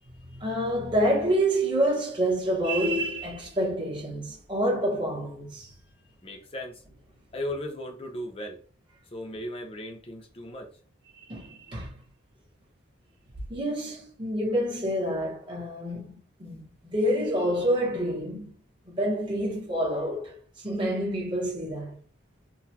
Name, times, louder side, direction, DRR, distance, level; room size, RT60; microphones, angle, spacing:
voice 1, 0.2-5.7 11.2-11.9 13.5-16.1 16.4-18.5 18.8-22.0, right 1 dB, 25° right, 1.3 m, -28 dB
voice 2, 6.2-6.8 7.3-8.6 9.1-10.7, left 1 dB, 30° left, 0.7 m, -36 dB
3.8 x 2.6 x 2.9 m
head